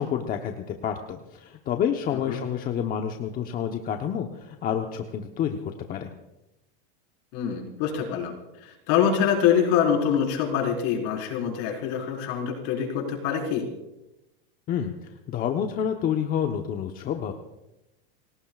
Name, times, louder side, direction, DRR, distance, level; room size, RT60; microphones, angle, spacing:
voice 1, 0.0-6.1 14.7-17.3, left 8 dB, 30° left, 4 dB, 1.0 m, -29 dB
voice 2, 7.3-8.3 8.6-13.6, left 8 dB, 55° left, 0 dB, 4.8 m, -25 dB
27.5 x 18.0 x 2.5 m, 0.93 s
supercardioid pair, 140°, 29 cm